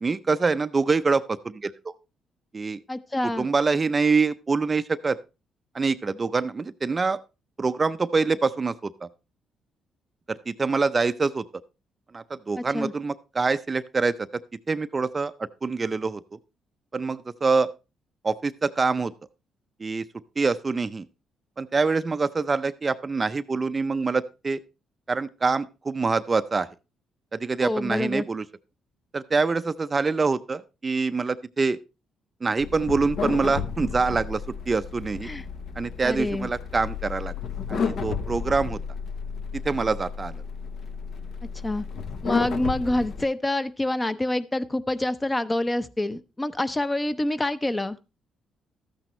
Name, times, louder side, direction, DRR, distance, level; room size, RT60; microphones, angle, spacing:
voice 1, 0.0-1.9 2.5-2.8 3.4-5.2 5.7-7.2 7.6-8.7 9.0-9.1 10.3-11.4 12.1-14.3 14.7-15.3 15.6-16.2 16.9-17.7 18.2-19.1 19.8-20.0 20.4-21.1 21.6-24.6 25.1-26.7 27.3-28.4 29.1-31.8 32.4-35.3 35.8-37.3 37.7-38.8 39.6-40.3, right 4 dB, 30° right, 12 dB, 0.5 m, -25 dB
voice 2, 2.9-3.5 12.6-12.9 27.6-28.2 35.2-35.4 36.0-36.5 41.6-41.8 42.2-48.0, left 1 dB, 15° left, 12 dB, 0.7 m, -27 dB
sound 1, 32.6-43.2, left 6 dB, 65° left, 1.0 m, -32 dB
13.0 x 8.9 x 3.1 m, 0.28 s
cardioid pair, 90°, 0 cm